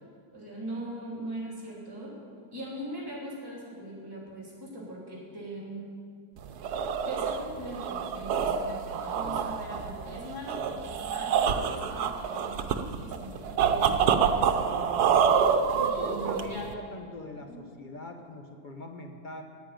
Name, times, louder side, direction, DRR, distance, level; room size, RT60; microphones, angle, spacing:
voice 1, 0.3-2.1 2.5-5.8 7.1-15.3 15.9-16.7 17.5-17.6, right 1 dB, 15° right, -4 dB, 2.6 m, -40 dB
sound 1, 6.4-16.7, right 7 dB, 90° right, 1.3 m, -27 dB
voice 2, 9.2-9.5 15.7-19.4, left 1 dB, 35° left, 4 dB, 1.0 m, -42 dB
9.9 x 9.5 x 8.9 m, 2.3 s
omnidirectional pair, 1.6 m